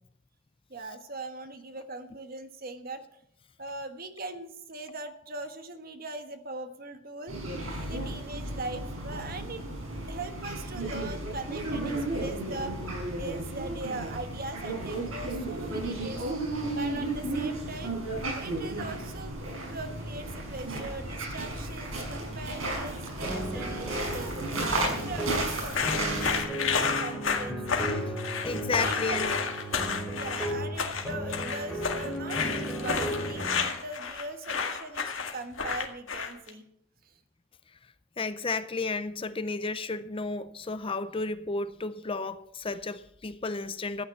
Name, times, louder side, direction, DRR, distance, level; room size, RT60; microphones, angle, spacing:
voice 1, 0.7-3.0 3.6-7.4 7.8-9.7 10.1-12.7 13.2-16.2 16.7-17.9 18.3-19.3 19.7-27.6 28.8-29.2 30.1-36.7 37.0-37.2, right 2 dB, 45° right, 1.5 m, -40 dB
sound 1, 7.3-26.4, right 2 dB, 80° right, 6.3 m, -34 dB
sound 2, 23.2-33.7, right 1 dB, ahead, 3.7 m, -35 dB
sound 3, 25.7-36.5, left 5 dB, 65° left, 2.0 m, -31 dB
voice 2, 28.4-29.3 38.2-44.0, left 3 dB, 25° left, 0.5 m, -32 dB
14.0 x 9.1 x 7.1 m
head